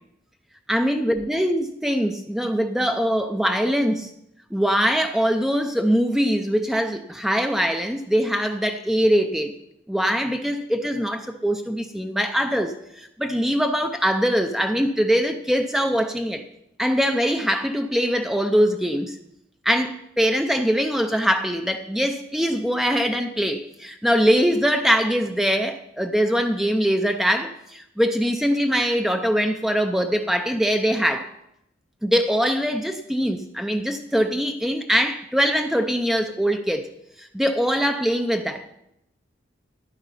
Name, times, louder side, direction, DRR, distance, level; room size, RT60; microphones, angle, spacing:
voice 1, 0.7-4.1 4.5-9.6 9.9-16.4 16.8-19.2 19.6-31.3 32.0-36.9 37.2-38.7, equal, ahead, 6 dB, 0.5 m, -22 dB
11.5 x 9.1 x 5.6 m, 0.81 s
head